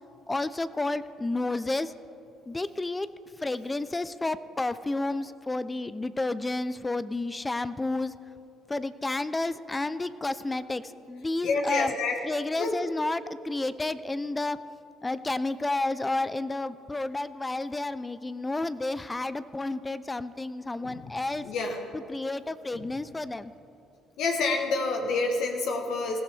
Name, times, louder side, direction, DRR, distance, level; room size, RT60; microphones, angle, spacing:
voice 1, 0.3-1.9 2.5-3.1 3.4-8.1 8.7-11.9 12.2-14.6 15.0-21.5 22.1-23.5, left 2 dB, 20° left, 14 dB, 0.5 m, -31 dB
voice 2, 11.4-12.2 12.6-12.8 20.8-21.0 21.4-21.8 22.7-22.9 24.2-26.2, left 3 dB, 70° left, 2 dB, 1.3 m, -28 dB
20.5 x 15.0 x 3.5 m, 2.6 s
hypercardioid pair, 65°, 0 cm